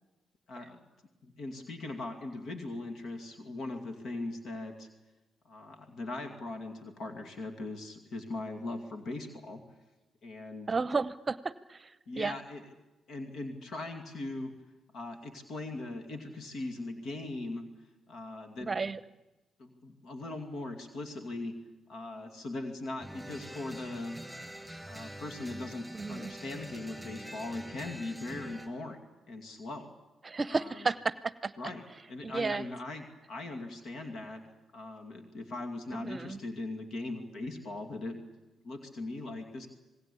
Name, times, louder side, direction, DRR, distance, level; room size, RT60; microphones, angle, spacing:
voice 1, 0.5-0.8 1.2-4.9 5.4-9.6 10.2-10.7 12.1-12.6 13.1-14.5 14.9-17.7 18.1-18.9 19.6-21.6 21.9-24.2 24.9-29.0 29.3-29.9 30.5-30.8 31.6-31.8 32.1-34.4 34.7-38.2 38.6-39.7, left 2 dB, 65° left, 5 dB, 2.5 m, -40 dB
voice 2, 10.7-12.4 18.6-19.0 25.9-26.3 30.2-31.5 32.2-32.6 36.0-36.4, right 4 dB, 35° right, 17 dB, 0.8 m, -33 dB
sound 1, 23.0-28.7, right 1 dB, ahead, 5.1 m, -45 dB
27.5 x 19.5 x 8.5 m, 1.0 s
hypercardioid pair, 45°, 0 cm